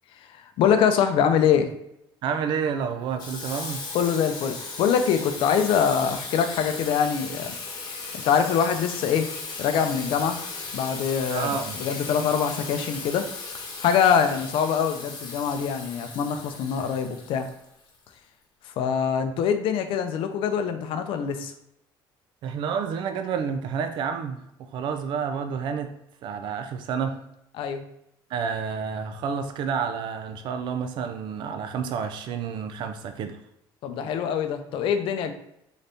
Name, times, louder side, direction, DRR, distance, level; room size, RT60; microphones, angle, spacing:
voice 1, 0.2-1.7 3.9-7.5 7.9-9.3 9.6-10.4 10.7-13.3 13.8-17.5 18.6-21.5 27.5-27.8 33.8-35.3, left 7 dB, 60° left, 7 dB, 0.5 m, -24 dB
voice 2, 2.2-3.9 11.3-11.8 22.4-25.9 26.2-27.2 28.3-33.4, right 6 dB, 55° right, 7 dB, 0.4 m, -29 dB
Water tap faucet / Sink (filling or washing), 3.2-18.0, left 4 dB, 45° left, 1.1 m, -37 dB
3.9 x 2.7 x 3.4 m, 0.79 s
cardioid pair, 135°, 10 cm